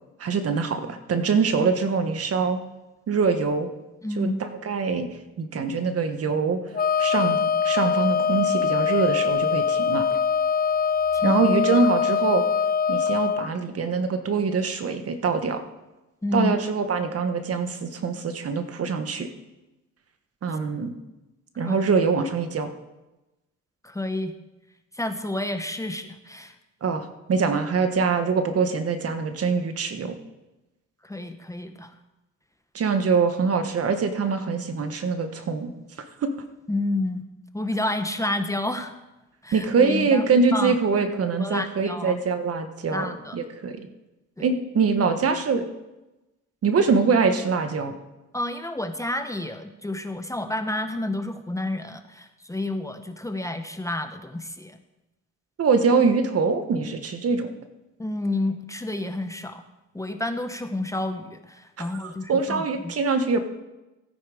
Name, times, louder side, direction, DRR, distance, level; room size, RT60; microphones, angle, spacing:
voice 1, 0.2-2.6 3.1-3.7 4.1-5.1 5.4-6.6 7.0-10.0 11.2-12.4 12.9-15.6 16.3-19.3 20.4-20.9 21.6-22.7 26.8-30.2 32.7-35.7 36.2-36.3 39.5-43.8 44.4-45.7 46.6-48.0 55.6-57.5 61.8-63.4, right 5 dB, 50° right, 8 dB, 1.4 m, -24 dB
voice 2, 4.0-4.4 11.1-11.4 16.2-16.5 20.5-20.6 21.7-21.9 23.8-24.3 24.9-26.6 31.0-31.9 36.7-37.2 37.5-38.9 39.4-40.8 41.4-42.2 42.8-43.4 44.4-44.5 48.3-54.8 58.0-59.6 59.9-62.9, left 2 dB, 10° left, 8 dB, 1.0 m, -30 dB
Wind instrument woodwind instrument, 6.7-13.5, left 6 dB, 30° left, 0.6 m, -23 dB
15.5 x 9.2 x 5.0 m, 1.0 s
cardioid pair, 90°, 30 cm